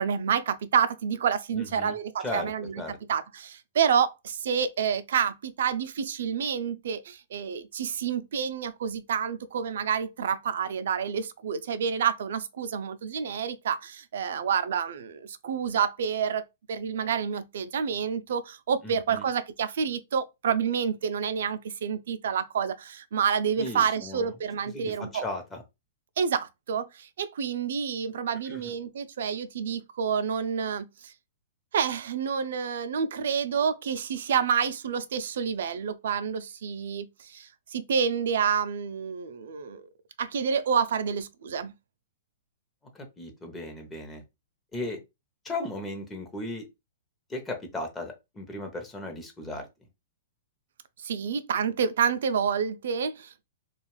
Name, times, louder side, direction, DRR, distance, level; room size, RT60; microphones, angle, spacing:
voice 1, 0.0-2.8 3.1-16.4 16.7-25.2 26.2-31.1 31.7-39.8 40.2-41.7 51.0-53.4, right 7 dB, 70° right, 0.4 m, -28 dB
voice 2, 1.5-1.9 2.2-2.5 2.8-3.0 18.8-19.2 23.6-24.3 24.7-25.6 28.5-28.7 42.9-44.2 44.7-45.0 45.4-46.7 47.3-49.7, left 2 dB, 15° left, 0.7 m, -36 dB
2.4 x 2.3 x 3.1 m
hypercardioid pair, 135°, 0 cm